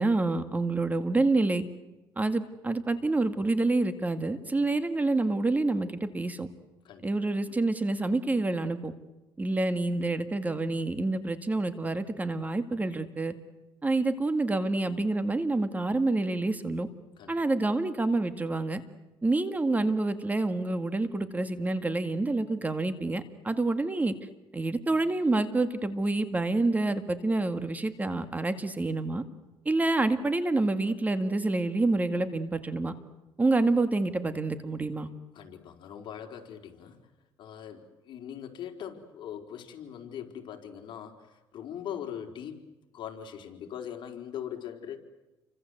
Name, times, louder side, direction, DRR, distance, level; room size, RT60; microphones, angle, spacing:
voice 1, 0.0-1.6 2.2-6.5 7.0-8.9 9.4-13.3 13.8-16.9 17.3-18.8 19.2-24.1 24.5-29.2 29.7-32.9 33.4-35.1, right 2 dB, 15° right, 10 dB, 2.0 m, -27 dB
voice 2, 35.3-37.0 37.4-41.2 41.5-45.0, left 9 dB, 60° left, 3 dB, 4.4 m, -41 dB
30.0 x 25.0 x 8.0 m, 1.1 s
cardioid pair, 110°, 9 cm